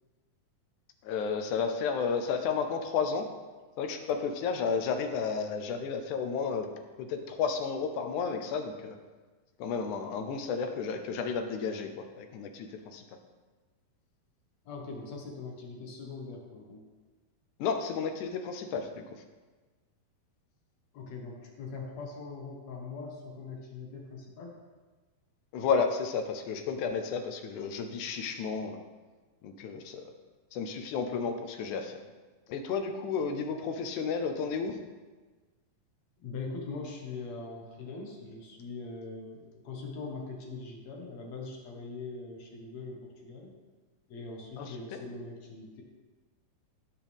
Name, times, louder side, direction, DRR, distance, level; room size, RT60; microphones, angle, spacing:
voice 1, 1.0-3.3 3.8-6.7 7.0-9.0 9.6-13.0 17.6-19.2 25.5-28.8 29.4-30.1 30.5-32.0 32.5-34.8 44.6-44.8, left 5 dB, 75° left, 6 dB, 1.9 m, -32 dB
voice 2, 14.7-16.8 20.9-24.5 36.2-43.5 44.1-45.8, left 3 dB, 60° left, 0 dB, 2.2 m, -42 dB
16.5 x 5.8 x 3.5 m, 1.3 s
omnidirectional pair, 4.0 m